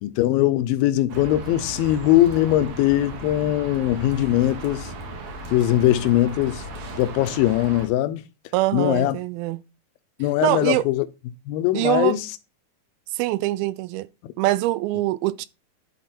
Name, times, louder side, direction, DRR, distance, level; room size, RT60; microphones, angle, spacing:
voice 1, 0.0-4.9 5.5-6.6 7.0-8.2 8.7-9.2 10.2-11.1 11.5-12.3, left 14 dB, 80° left, 2.3 m, -21 dB
sound 1, 1.1-7.9, right 3 dB, 55° right, 2.4 m, -36 dB
voice 2, 8.5-9.6 10.4-10.8 11.7-12.2 13.1-14.1 14.4-15.5, right 17 dB, 90° right, 2.4 m, -23 dB
11.0 x 4.1 x 4.3 m
omnidirectional pair, 4.2 m